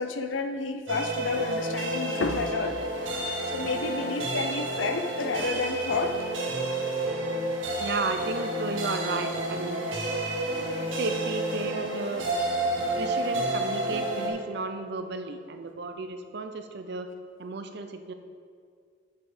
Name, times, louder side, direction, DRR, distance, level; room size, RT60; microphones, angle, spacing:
voice 1, 0.0-2.8 3.4-6.3 10.5-10.8, left 4 dB, 80° left, 8 dB, 0.6 m, -30 dB
sound 1, 0.9-14.3, right 1 dB, 90° right, 1.6 m, -30 dB
voice 2, 7.8-9.8 10.6-12.3 12.9-17.1 17.4-18.1, right 3 dB, 60° right, 7 dB, 0.6 m, -33 dB
7.5 x 7.4 x 5.0 m, 2.2 s
head